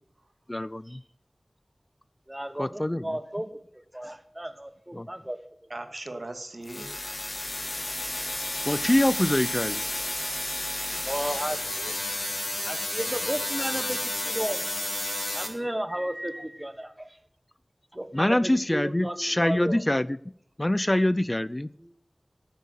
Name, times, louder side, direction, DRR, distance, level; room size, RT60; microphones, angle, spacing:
voice 1, 0.5-1.0 2.6-3.1 4.9-5.1 8.6-9.8 18.1-20.2 20.6-21.7, left 1 dB, 25° left, 18 dB, 0.4 m, -24 dB
voice 2, 2.3-3.6 3.9-5.4 8.2-8.4 11.1-11.9 12.7-14.6 15.3-17.2 17.9-19.8 21.8-21.9, right 1 dB, 20° right, 10 dB, 1.3 m, -34 dB
voice 3, 5.7-7.6 10.9-11.7, right 2 dB, 70° right, 7 dB, 2.0 m, -41 dB
sound 1, 6.7-15.5, left 1 dB, 45° left, 3.6 m, -31 dB
13.5 x 9.1 x 6.6 m, 0.70 s
wide cardioid pair, 55°, 0 cm